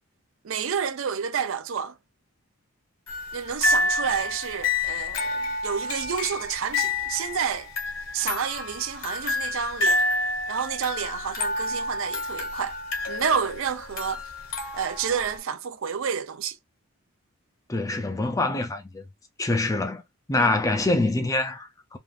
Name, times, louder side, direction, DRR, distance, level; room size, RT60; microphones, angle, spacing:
voice 1, 0.4-2.0 3.3-7.7 8.1-10.0 10.5-12.7 13.1-14.2 14.6-16.6 20.4-20.5, right 7 dB, 65° right, 0.5 m, -29 dB
sound 1, 3.1-15.4, left 2 dB, 65° left, 1.1 m, -29 dB
voice 2, 17.7-19.0 19.4-20.0 20.3-22.0, left 2 dB, 15° left, 0.4 m, -25 dB
3.5 x 2.5 x 2.4 m
head